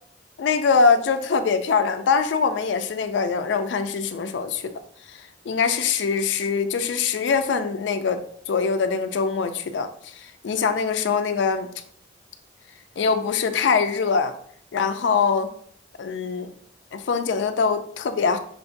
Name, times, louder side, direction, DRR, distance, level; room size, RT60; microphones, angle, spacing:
voice 1, 0.4-4.7 5.5-11.7 13.0-14.3 14.7-15.5 16.0-16.5 16.9-18.4, left 5 dB, 75° left, 8 dB, 0.4 m, -23 dB
6.3 x 2.8 x 2.6 m, 0.63 s
head